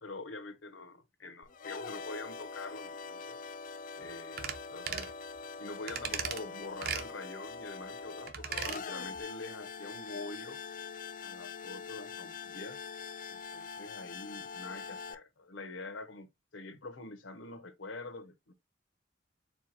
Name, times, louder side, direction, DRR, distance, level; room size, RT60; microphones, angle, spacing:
voice 1, 0.0-3.4 3.9-5.1 5.6-10.6 11.2-12.8 13.3-16.3 16.5-18.5, left 2 dB, 90° left, 0.9 m, -45 dB
sound 1, 1.4-15.1, left 5 dB, 45° left, 0.4 m, -43 dB
sound 2, 4.4-4.6 4.9-5.1 5.9-6.4 6.8-7.1 8.3-8.8 9.2-9.3, right 7 dB, 50° right, 0.7 m, -36 dB
4.5 x 2.2 x 4.4 m
head